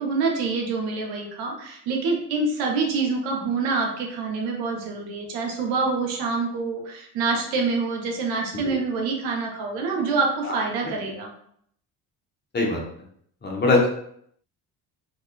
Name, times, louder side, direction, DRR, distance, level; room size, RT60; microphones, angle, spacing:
voice 1, 0.0-11.3, right 4 dB, 80° right, 0 dB, 0.8 m, -26 dB
voice 2, 13.4-13.9, left 2 dB, 30° left, -1 dB, 0.8 m, -21 dB
2.4 x 2.2 x 2.2 m, 0.66 s
supercardioid pair, 70°, 37 cm